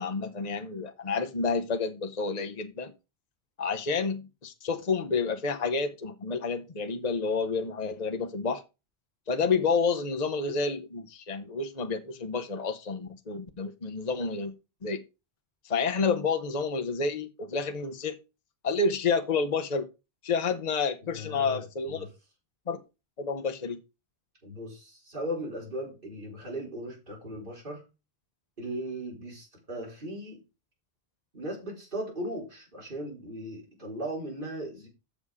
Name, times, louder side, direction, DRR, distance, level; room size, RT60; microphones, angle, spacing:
voice 1, 0.0-2.9 3.6-8.6 9.3-14.5 14.8-15.0 15.6-18.2 18.6-19.9 20.2-22.1 22.7-22.8 23.2-23.8, left 4 dB, 40° left, 1.0 m, -29 dB
voice 2, 21.1-21.6 21.9-22.1 24.4-27.8 28.6-30.4 31.3-34.9, right 1 dB, 55° right, 3.9 m, -37 dB
7.2 x 7.1 x 4.9 m
omnidirectional pair, 1.1 m